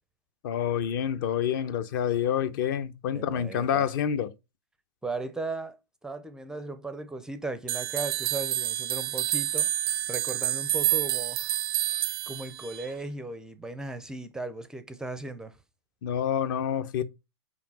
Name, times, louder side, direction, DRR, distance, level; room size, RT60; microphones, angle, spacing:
voice 1, 0.4-4.3 16.0-17.0, left 9 dB, 50° left, 0.8 m, -28 dB
voice 2, 3.1-3.9 5.0-15.6, right 2 dB, 5° right, 0.5 m, -37 dB
sound 1, 7.7-12.9, right 14 dB, 60° right, 0.4 m, -28 dB
5.8 x 4.6 x 6.1 m
hypercardioid pair, 145°, 14 cm